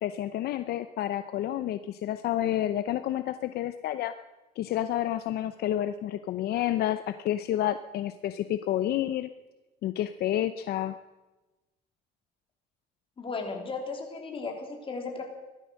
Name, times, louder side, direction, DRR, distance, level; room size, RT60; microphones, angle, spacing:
voice 1, 0.0-4.1 4.6-9.3 9.8-10.9, left 12 dB, 70° left, 11 dB, 0.7 m, -29 dB
voice 2, 13.2-15.2, left 4 dB, 30° left, 2 dB, 3.5 m, -35 dB
16.0 x 13.0 x 6.4 m, 1.1 s
cardioid pair, 110°, 17 cm